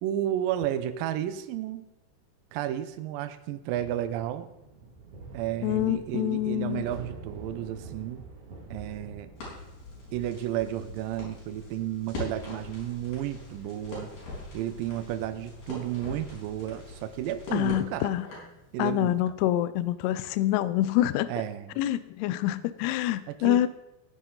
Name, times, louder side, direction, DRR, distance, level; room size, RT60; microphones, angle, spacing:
voice 1, 0.0-1.9 2.5-4.5 5.3-8.2 8.7-9.3 10.1-14.1 14.5-18.1 18.7-19.2 21.3-21.7 23.3-23.7, right 12 dB, 85° right, 10 dB, 2.0 m, -32 dB
sound 1, 3.7-19.5, right 3 dB, 40° right, 2.4 m, -49 dB
voice 2, 5.6-6.9 17.5-18.3 18.8-21.3 21.8-23.7, left 14 dB, 80° left, 14 dB, 2.6 m, -26 dB
Crackle, 9.4-18.6, left 2 dB, 60° left, 6.4 m, -42 dB
16.0 x 9.6 x 3.8 m, 0.90 s
omnidirectional pair, 5.0 m